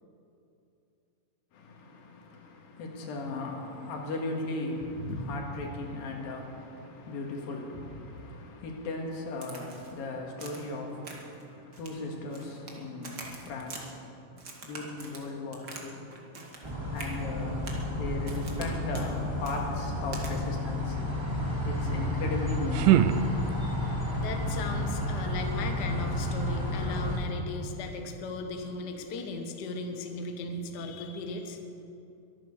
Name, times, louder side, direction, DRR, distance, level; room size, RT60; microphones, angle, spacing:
voice 1, 1.5-16.1 16.9-17.6 17.9-21.0 21.6-23.0, left 2 dB, 90° left, 1 dB, 3.8 m, -37 dB
Crack, 9.4-9.9 10.4-10.7 11.0-11.4 11.7-12.8 13.0-13.8 14.4-15.9 16.1-16.7 17.0-17.1 17.6-17.9 18.3-18.7 18.9-19.1 19.4-19.6 20.1-20.3, right 3 dB, 35° right, 1.9 m, -44 dB
sound 1, 16.6-27.2, left 1 dB, 10° right, 1.6 m, -31 dB
sound 2, 22.2-23.9, right 11 dB, 80° right, 1.9 m, -26 dB
voice 2, 24.2-31.6, left 2 dB, 60° left, 5 dB, 1.1 m, -37 dB
23.0 x 9.3 x 6.6 m, 2.7 s
omnidirectional pair, 4.0 m